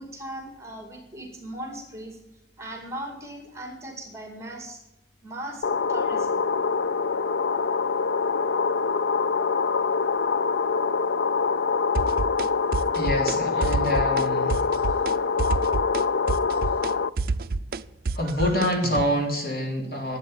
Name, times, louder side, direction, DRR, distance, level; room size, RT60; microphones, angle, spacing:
voice 1, 0.0-2.2 2.6-4.8 5.2-6.4, right 1 dB, 15° right, 3 dB, 2.2 m, -38 dB
sound 1, 5.6-17.1, left 5 dB, 80° left, 0.5 m, -24 dB
sound 2, 11.9-12.5 12.7-13.4 13.6-14.2 14.5-15.1 15.4-19.1, right 3 dB, 55° right, 0.4 m, -28 dB
voice 2, 12.9-14.7 18.1-20.2, equal, 55° left, 1 dB, 3.4 m, -26 dB
11.5 x 8.3 x 8.9 m, 0.93 s
head